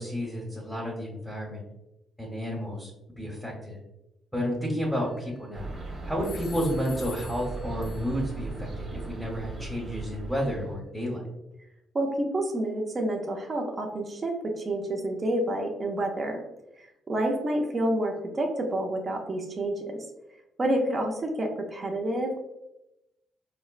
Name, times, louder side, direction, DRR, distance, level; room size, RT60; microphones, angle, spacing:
voice 1, 0.0-1.6 2.2-2.9 3.2-3.8 4.3-5.7 6.1-11.2, equal, ahead, -3 dB, 0.9 m, -31 dB
sound 1, 5.0-5.7 6.2-8.4, left 6 dB, 60° left, 0.4 m, -48 dB
sound 2, 5.5-10.8, right 3 dB, 55° right, 1.0 m, -38 dB
voice 2, 11.9-16.4 17.1-20.0 20.6-22.4, right 1 dB, 35° right, 1 dB, 0.6 m, -28 dB
4.2 x 2.1 x 2.4 m, 0.90 s
cardioid pair, 90°, 0 cm